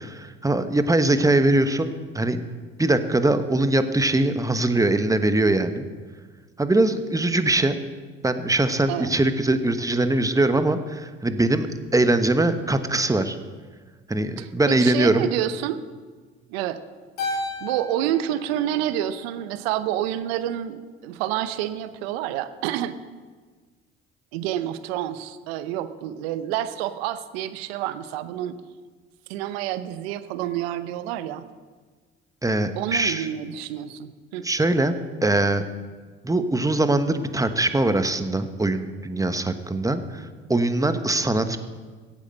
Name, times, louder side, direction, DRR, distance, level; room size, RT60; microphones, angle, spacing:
voice 1, 0.0-2.4 2.8-5.9 6.6-7.7 8.2-11.7 11.9-13.4 14.1-15.3 32.4-33.3 34.4-35.0 35.2-35.6 36.2-41.6, right 2 dB, 10° right, 10 dB, 1.1 m, -22 dB
voice 2, 14.4-15.8 16.5-16.8 17.2-23.0 24.3-28.5 29.3-31.4 32.8-34.5, right 12 dB, 80° right, 12 dB, 0.8 m, -28 dB
Keyboard (musical), 17.2-19.7, left 2 dB, 65° left, 3.7 m, -34 dB
15.0 x 8.5 x 6.5 m, 1.4 s
hypercardioid pair, 60°, 30 cm